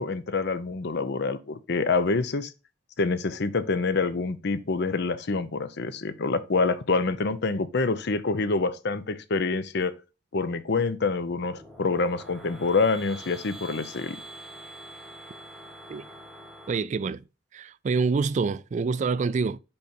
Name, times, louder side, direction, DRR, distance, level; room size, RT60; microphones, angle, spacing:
voice 1, 0.0-2.5 3.0-10.0 10.3-14.2, left 4 dB, 60° left, 0.7 m, -26 dB
sound 1, 11.1-16.8, right 1 dB, ahead, 1.6 m, -45 dB
voice 2, 16.7-17.2 17.5-19.6, right 4 dB, 40° right, 0.3 m, -26 dB
5.5 x 5.2 x 4.3 m
head